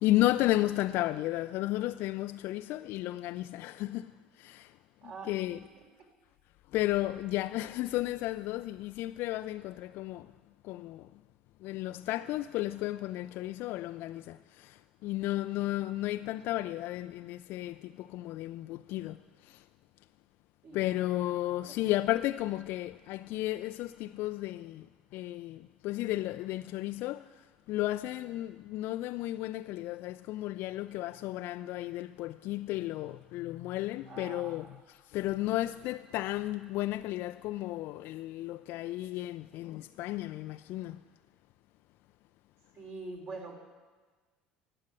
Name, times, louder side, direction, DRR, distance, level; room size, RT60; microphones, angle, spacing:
voice 1, 0.0-4.7 5.0-5.6 6.7-10.3 10.6-11.1 11.6-19.2 19.4-19.6 20.7-24.9 25.1-41.0, left 16 dB, 55° left, 0.3 m, -33 dB
voice 2, 5.0-6.1 20.6-20.8 21.6-21.8 34.0-34.8 42.7-43.5, right 3 dB, 50° right, 3.6 m, -45 dB
17.5 x 7.6 x 9.7 m
figure-of-eight pair, 60°, 4 cm